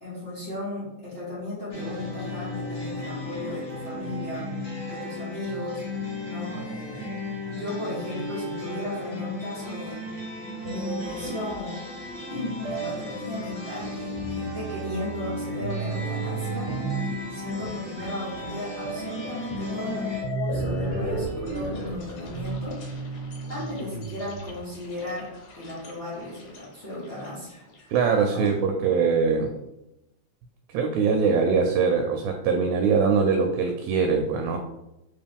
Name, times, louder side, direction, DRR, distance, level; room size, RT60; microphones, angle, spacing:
voice 1, 0.0-4.5 4.9-5.8 6.2-7.1 7.5-10.0 10.6-11.8 12.3-16.8 17.3-22.8 23.5-27.6 28.2-28.5, left 1 dB, 65° left, -10 dB, 0.6 m, -35 dB
sound 1, 1.7-20.2, left 2 dB, 35° left, 0.8 m, -35 dB
sound 2, 10.6-12.1 12.6-24.8, right 5 dB, 65° right, 1.7 m, -35 dB
sound 3, 17.0-17.4 17.7-18.1 18.5-18.6 19.4-28.5, left 2 dB, 85° left, 2.4 m, -37 dB
voice 2, 27.9-29.5 30.7-34.6, right 5 dB, 80° right, 3 dB, 1.8 m, -22 dB
4.4 x 3.1 x 3.4 m, 0.88 s
omnidirectional pair, 3.4 m